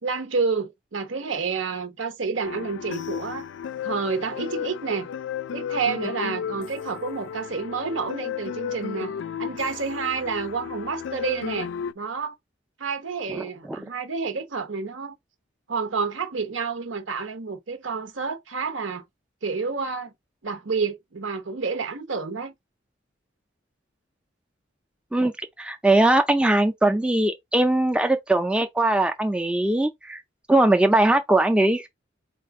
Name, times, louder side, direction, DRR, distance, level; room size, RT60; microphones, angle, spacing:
voice 1, 0.0-3.5 3.8-5.1 5.5-9.1 9.4-11.7 12.0-12.3 12.8-15.2 15.7-19.0 19.4-20.1 20.4-22.5, right 5 dB, 75° right, 1.0 m, -29 dB
sound 1, 2.4-11.9, left 8 dB, 65° left, 0.3 m, -33 dB
voice 2, 25.6-30.2 30.5-31.9, right 2 dB, 5° right, 0.4 m, -20 dB
4.2 x 2.4 x 4.6 m
head